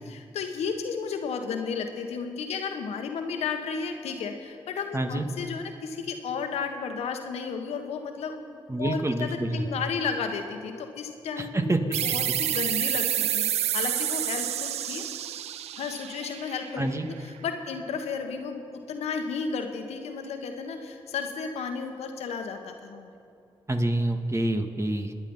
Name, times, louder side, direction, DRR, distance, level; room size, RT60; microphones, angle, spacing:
voice 1, 0.1-15.0 15.8-18.6 18.9-23.1, left 5 dB, 80° left, 5 dB, 1.3 m, -33 dB
voice 2, 4.9-5.2 8.7-9.6 11.4-11.8 16.8-17.1 23.7-25.1, right 1 dB, 25° right, 5 dB, 1.7 m, -27 dB
sound 1, 11.9-17.2, right 11 dB, 80° right, 0.5 m, -29 dB
26.0 x 9.9 x 5.6 m, 2.6 s
supercardioid pair, 40°, 11 cm